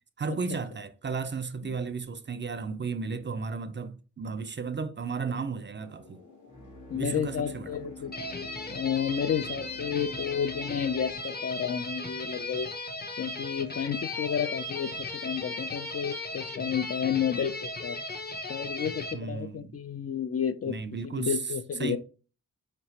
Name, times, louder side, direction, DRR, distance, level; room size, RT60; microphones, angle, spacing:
voice 1, 0.2-6.2 6.9-7.8 19.1-19.8 20.7-21.4 21.8-22.0, right 5 dB, 35° right, 0.4 m, -34 dB
sound 1, 5.8-11.1, left 4 dB, 60° left, 1.4 m, -46 dB
voice 2, 6.9-8.1 8.7-12.7 13.2-18.0 18.5-20.7 21.0-22.0, left 8 dB, 45° left, 0.4 m, -31 dB
sound 2, 8.1-19.1, left 2 dB, 30° left, 0.9 m, -37 dB
4.3 x 2.9 x 2.8 m
cardioid pair, 45°, 34 cm